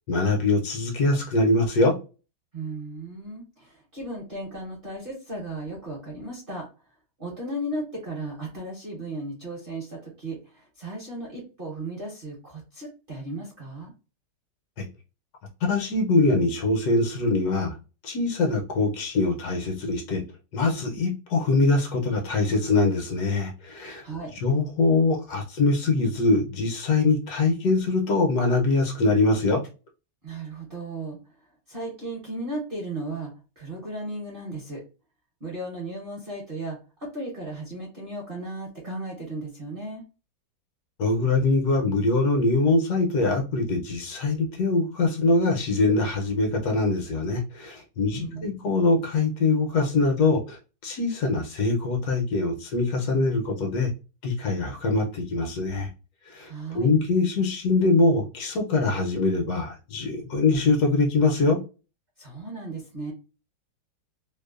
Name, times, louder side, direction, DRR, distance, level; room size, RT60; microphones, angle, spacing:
voice 1, 0.1-2.0 14.8-14.9 15.6-17.8 18.0-20.2 20.5-24.0 24.3-29.6 41.0-53.9 54.2-55.9 56.2-61.6, left 3 dB, 70° left, 2 dB, 1.0 m, -23 dB
voice 2, 2.5-6.7 7.2-13.9 24.0-24.3 30.2-31.3 31.7-34.8 35.4-40.0 48.0-48.5 56.4-56.9 62.2-63.1, right 2 dB, 45° right, -3 dB, 0.7 m, -35 dB
3.0 x 2.0 x 2.3 m, 0.32 s
omnidirectional pair, 1.9 m